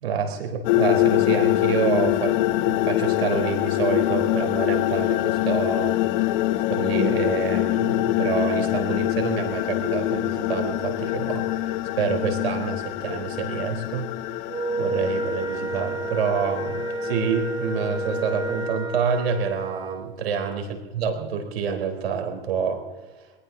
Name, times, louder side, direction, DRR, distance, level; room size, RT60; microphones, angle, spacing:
voice 1, 0.0-6.0 6.2-6.4 6.7-14.1 14.8-22.8, right 6 dB, 75° right, 4 dB, 3.8 m, -27 dB
sound 1, 0.6-18.7, left 17 dB, 50° left, 0.7 m, -25 dB
Wind instrument woodwind instrument, 14.5-20.1, right 2 dB, 15° right, 1.2 m, -30 dB
22.0 x 20.0 x 2.7 m, 1.3 s
hypercardioid pair, 105°, 30 cm